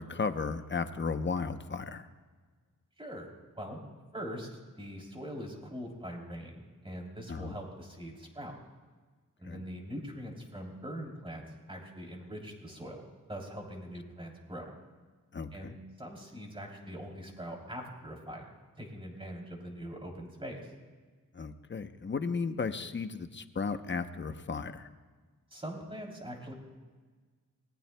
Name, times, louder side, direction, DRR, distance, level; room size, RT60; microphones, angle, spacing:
voice 1, 0.0-2.1 7.3-7.6 9.4-9.6 15.3-15.8 21.3-24.9, left 4 dB, 35° left, 9 dB, 0.8 m, -35 dB
voice 2, 3.0-3.8 4.1-8.5 9.4-14.6 15.5-20.7 25.5-26.5, equal, 15° right, 0 dB, 3.2 m, -42 dB
25.0 x 19.5 x 2.2 m, 1.5 s
wide cardioid pair, 130°, 33 cm